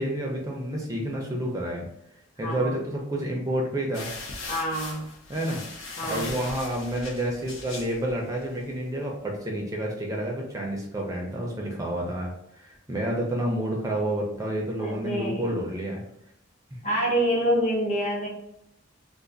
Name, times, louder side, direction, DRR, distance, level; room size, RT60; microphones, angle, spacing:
voice 1, 0.0-1.9 2.4-4.1 5.3-5.6 6.0-16.0, right 1 dB, 15° right, -1 dB, 0.5 m, -29 dB
voice 2, 2.4-2.8 4.5-5.1 6.0-6.4 14.8-15.5 16.8-18.3, equal, 35° left, -3 dB, 0.9 m, -27 dB
sound 1, 3.9-8.6, left 3 dB, 80° left, 0.7 m, -39 dB
2.5 x 2.4 x 3.8 m, 0.79 s
head